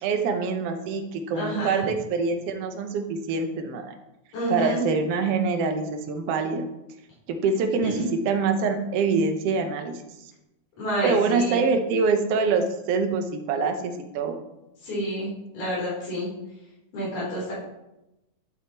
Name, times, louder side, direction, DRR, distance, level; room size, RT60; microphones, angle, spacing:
voice 1, 0.0-3.9 4.5-6.6 7.3-10.0 11.0-14.4, right 4 dB, 65° right, 6 dB, 1.6 m, -25 dB
voice 2, 1.3-1.9 4.3-4.8 8.0-8.1 10.8-11.6 14.8-16.3 16.9-17.5, equal, 75° left, -8 dB, 5.0 m, -29 dB
10.0 x 7.8 x 3.0 m, 0.93 s
omnidirectional pair, 3.5 m